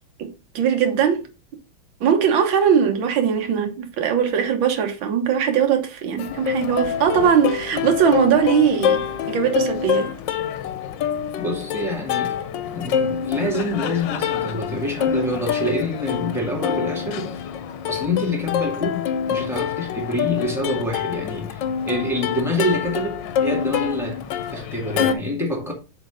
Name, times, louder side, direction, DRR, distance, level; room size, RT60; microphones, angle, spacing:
voice 1, 0.6-1.3 2.0-10.1, right 7 dB, 70° right, 1.8 m, -20 dB
Plucked string instrument, 6.2-25.1, left 8 dB, 70° left, 1.2 m, -26 dB
voice 2, 11.3-12.3 12.7-17.4 17.9-24.3 24.5-25.7, left 1 dB, ahead, 1.7 m, -26 dB
7.1 x 3.3 x 5.0 m
omnidirectional pair, 2.3 m